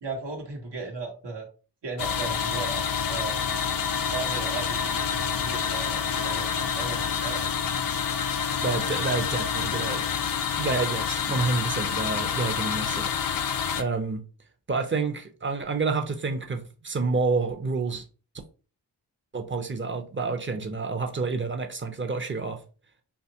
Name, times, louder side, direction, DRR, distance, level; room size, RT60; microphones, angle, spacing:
voice 1, 0.0-1.5 1.8-3.6 4.1-7.5, right 4 dB, 80° right, 1.0 m, -36 dB
sound 1, 2.0-13.8, left 7 dB, 55° left, 0.5 m, -28 dB
voice 2, 8.6-10.3 10.6-13.1 13.7-14.2 14.7-18.0 19.3-22.6, right 4 dB, 30° right, 0.5 m, -29 dB
2.9 x 2.3 x 2.7 m
cardioid pair, 50°, 41 cm